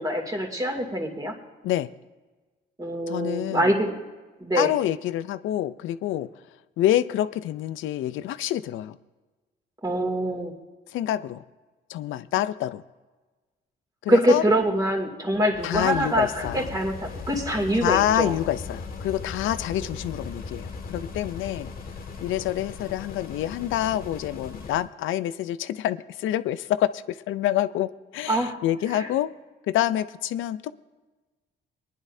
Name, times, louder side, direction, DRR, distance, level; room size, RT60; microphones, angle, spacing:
voice 1, 0.0-1.3 2.8-4.0 4.4-4.7 9.8-10.5 14.1-18.4 19.8-19.9 28.3-28.6 28.9-29.1, right 1 dB, 20° right, 1 dB, 2.6 m, -24 dB
voice 2, 3.1-3.7 4.5-6.3 6.8-9.0 10.9-11.4 11.9-12.8 14.0-14.4 15.6-16.7 17.8-21.7 22.2-29.3 29.7-30.7, left 12 dB, 85° left, 15 dB, 0.5 m, -27 dB
sound 1, 15.5-24.9, left 4 dB, 45° left, 1.9 m, -38 dB
21.5 x 10.5 x 2.7 m, 1.3 s
cardioid pair, 90°, 20 cm